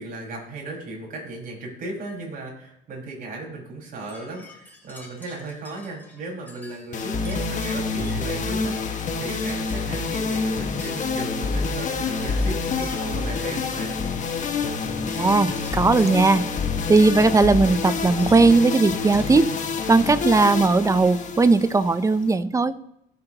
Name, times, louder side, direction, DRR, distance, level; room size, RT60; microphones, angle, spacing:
voice 1, 0.0-14.0, right 2 dB, 55° right, -2 dB, 5.3 m, -36 dB
sound 1, 4.0-19.2, left 1 dB, 10° left, 3.0 m, -49 dB
sound 2, 6.9-22.3, left 4 dB, 45° left, 1.6 m, -27 dB
voice 2, 15.2-16.4 16.9-19.5 19.9-22.7, right 3 dB, 20° right, 13 dB, 0.6 m, -18 dB
18.5 x 7.8 x 3.0 m, 0.75 s
cardioid pair, 110°, 17 cm